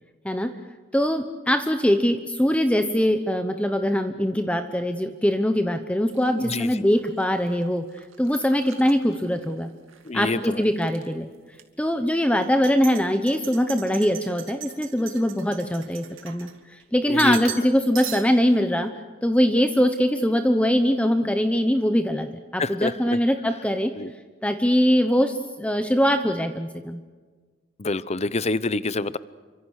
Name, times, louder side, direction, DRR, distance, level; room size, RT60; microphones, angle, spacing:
voice 1, 0.9-9.7 10.1-11.3 11.8-18.9 19.2-23.9 24.4-27.0, equal, 5° left, 7 dB, 1.0 m, -22 dB
sound 1, 6.1-10.1 10.4-11.1 11.5-11.6 12.4-16.8 17.2-17.7 17.9-18.5, right 11 dB, 80° right, 2.3 m, -40 dB
voice 2, 6.4-6.7 10.0-10.6 17.1-17.4 22.6-22.9 24.0-24.1 27.8-29.2, left 3 dB, 35° left, 16 dB, 0.8 m, -26 dB
29.0 x 25.0 x 6.5 m, 1.4 s
head